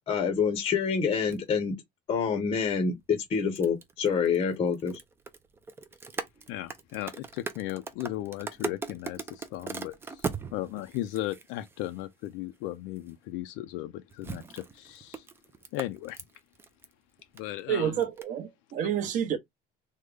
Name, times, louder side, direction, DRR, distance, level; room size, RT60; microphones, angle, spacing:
voice 1, 0.0-1.7 2.1-5.0, left 6 dB, 30° left, 0.6 m, -27 dB
sound 1, 1.3-1.4 3.1-12.3 13.0-13.1 14.1-16.9 17.2-17.6 18.0-18.2, right 5 dB, 10° right, 0.3 m, -39 dB
voice 2, 6.5-15.3 15.7-16.2 17.3-18.1 18.8-18.9, left 15 dB, 75° left, 0.4 m, -36 dB
voice 3, 17.7-19.4, right 9 dB, 40° right, 0.7 m, -29 dB
3.6 x 2.1 x 3.2 m
cardioid pair, 170°, 19 cm